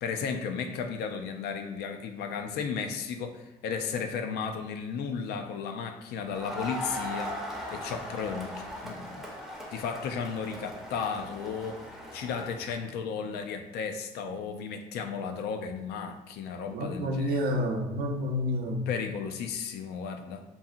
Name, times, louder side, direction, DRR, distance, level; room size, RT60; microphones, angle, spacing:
voice 1, 0.0-7.4 7.7-9.3 9.7-17.4 18.9-20.4, left 6 dB, 75° left, 5 dB, 0.4 m, -34 dB
Crowd, 6.3-12.9, left 1 dB, ahead, 0.5 m, -39 dB
voice 2, 16.7-18.9, left 1 dB, 65° right, 2 dB, 0.6 m, -29 dB
2.7 x 2.6 x 2.4 m, 1.1 s
cardioid pair, 110°, 17 cm